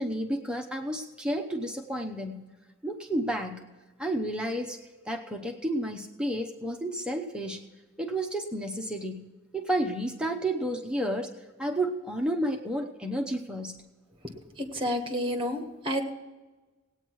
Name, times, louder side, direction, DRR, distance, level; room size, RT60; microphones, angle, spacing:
voice 1, 0.0-2.5 2.8-3.7 4.0-4.8 5.1-7.6 8.0-9.3 9.5-11.3 11.6-13.8, right 1 dB, 5° right, 3 dB, 0.8 m, -31 dB
voice 2, 14.6-16.0, equal, 25° right, 4 dB, 1.5 m, -30 dB
17.5 x 9.2 x 4.7 m, 1.2 s
head